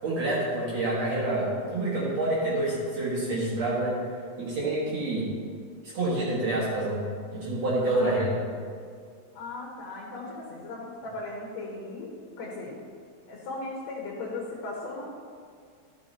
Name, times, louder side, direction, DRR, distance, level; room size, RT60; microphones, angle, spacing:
voice 1, 0.0-4.0 4.4-5.3 5.8-7.0 7.3-8.4, right 2 dB, 60° right, -7 dB, 2.7 m, -27 dB
voice 2, 9.3-12.8 13.3-15.0, left 2 dB, 65° left, -5 dB, 2.4 m, -38 dB
13.5 x 5.7 x 4.2 m, 2.1 s
omnidirectional pair, 3.5 m